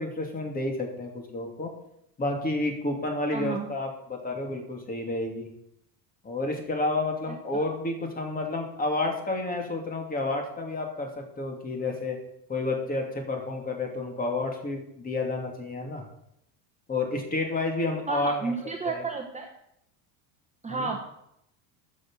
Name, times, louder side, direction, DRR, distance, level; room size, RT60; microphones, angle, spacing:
voice 1, 0.0-1.7 2.2-5.5 6.2-12.2 12.5-16.1 16.9-18.5 18.8-19.0 20.7-20.9, left 2 dB, 20° left, 2 dB, 2.7 m, -30 dB
voice 2, 3.3-3.7 7.3-7.4 18.1-19.5 20.6-21.0, right 4 dB, 15° right, 2 dB, 1.1 m, -31 dB
13.0 x 6.5 x 6.3 m, 0.77 s
cardioid pair, 135°, 41 cm